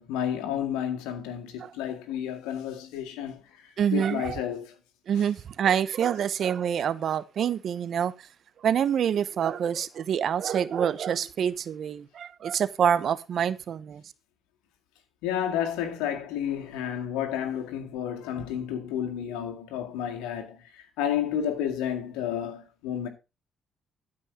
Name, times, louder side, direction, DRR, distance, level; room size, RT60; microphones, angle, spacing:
voice 1, 0.0-4.7 5.2-5.3 15.2-23.1, left 9 dB, 90° left, 2.0 m, -31 dB
voice 2, 3.8-4.4 5.1-8.1 8.6-14.0, right 8 dB, 60° right, 0.9 m, -26 dB
12.5 x 5.4 x 5.1 m
supercardioid pair, 65°, 0 cm